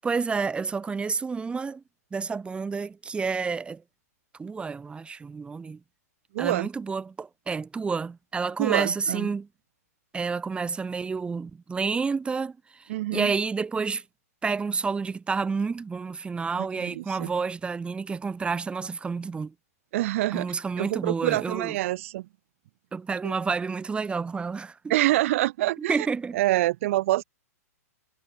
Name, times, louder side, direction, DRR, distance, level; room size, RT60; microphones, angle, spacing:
voice 1, 0.0-1.8 2.1-3.8 4.4-5.8 6.4-9.5 10.1-14.0 14.4-19.5 20.3-21.8 22.9-24.9 25.9-26.4, right 5 dB, 10° right, 7.4 m, -29 dB
voice 2, 6.3-6.7 8.6-9.3 12.9-13.3 16.6-17.3 19.9-22.3 23.2-23.3 24.9-26.1 26.3-27.2, right 16 dB, 55° right, 6.2 m, -26 dB
hypercardioid pair, 120°, 9 cm